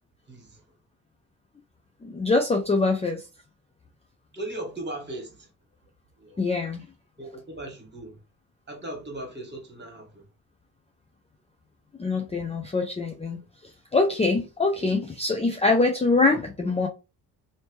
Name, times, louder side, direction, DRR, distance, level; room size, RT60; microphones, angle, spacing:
voice 1, 0.3-0.6 4.3-5.5 6.2-6.4 7.2-8.2 8.7-10.2, right 1 dB, 25° right, 1.7 m, -38 dB
voice 2, 2.0-3.2 6.4-6.9 12.0-13.4 13.9-16.9, left 3 dB, 15° left, 0.5 m, -24 dB
2.9 x 2.8 x 3.2 m
hypercardioid pair, 55°, 44 cm